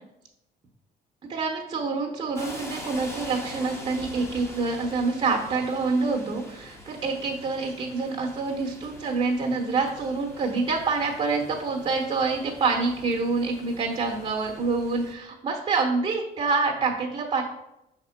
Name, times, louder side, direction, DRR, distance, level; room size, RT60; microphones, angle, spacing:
voice 1, 1.3-17.4, right 4 dB, 30° right, 1 dB, 1.0 m, -26 dB
sound 1, 2.4-15.1, equal, 15° left, 1.1 m, -44 dB
5.6 x 3.6 x 5.8 m, 0.90 s
cardioid pair, 110°, 17 cm